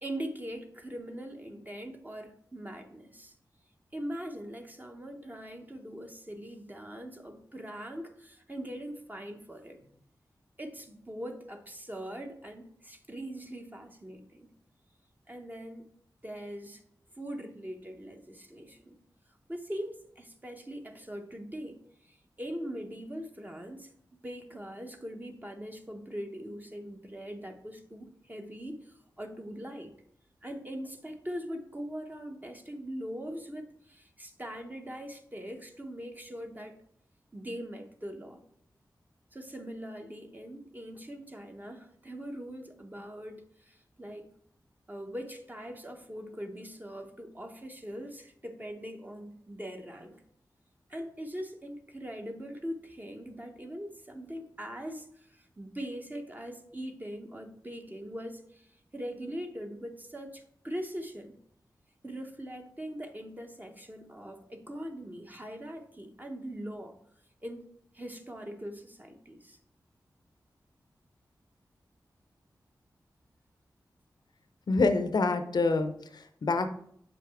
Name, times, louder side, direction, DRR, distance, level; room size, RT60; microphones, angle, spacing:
voice 1, 0.0-3.3 3.9-9.9 10.6-14.5 15.3-15.9 16.2-16.8 17.2-19.0 19.5-23.9 24.2-29.9 30.4-36.7 37.3-38.4 39.3-44.3 44.9-50.2 50.9-61.4 62.0-67.0 67.4-69.6, equal, 25° right, 4 dB, 0.9 m, -41 dB
voice 2, 74.7-76.7, left 3 dB, 65° left, 8 dB, 0.6 m, -27 dB
6.7 x 4.9 x 3.4 m, 0.68 s
cardioid pair, 45°, 8 cm